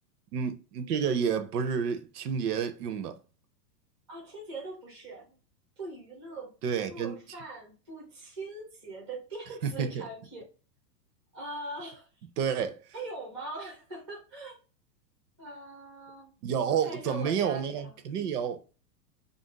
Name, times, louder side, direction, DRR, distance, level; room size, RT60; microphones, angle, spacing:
voice 1, 0.3-3.2 6.6-7.2 9.6-10.0 12.4-12.8 16.4-18.6, right 7 dB, 65° right, 0.6 m, -30 dB
voice 2, 4.1-5.3 5.8-10.5 11.3-12.1 12.9-14.6 15.4-16.3 16.7-18.0, right 2 dB, 20° right, 0.3 m, -42 dB
2.5 x 2.0 x 3.9 m
supercardioid pair, 165°, 50 cm